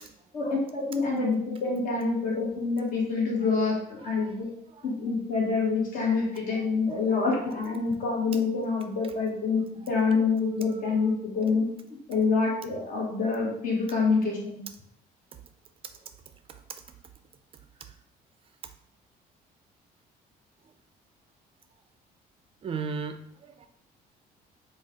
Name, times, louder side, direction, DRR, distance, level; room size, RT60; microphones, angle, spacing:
voice 1, 0.3-4.5 4.8-11.7 12.1-14.6, left 4 dB, 55° left, -3 dB, 1.3 m, -26 dB
voice 2, 4.0-4.9 6.1-6.2 6.5-6.6 6.9-7.2 9.8-9.9 10.7-11.0 15.8-16.0 16.5-16.8 17.8-18.0 22.6-23.7, right 5 dB, 35° right, 8 dB, 0.3 m, -39 dB
3.3 x 2.3 x 3.5 m, 0.72 s
cardioid pair, 110°, 17 cm